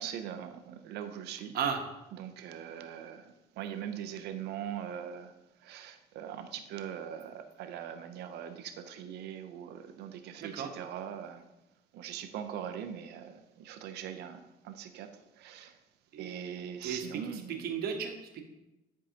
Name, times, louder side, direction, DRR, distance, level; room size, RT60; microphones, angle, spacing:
voice 1, 0.0-1.6 2.1-5.3 5.6-11.5 11.9-15.8 16.2-17.7, right 9 dB, 80° right, 8 dB, 0.7 m, -41 dB
voice 2, 16.8-18.4, right 7 dB, 65° right, 4 dB, 1.1 m, -35 dB
10.0 x 4.7 x 2.8 m, 0.98 s
cardioid pair, 110°, 17 cm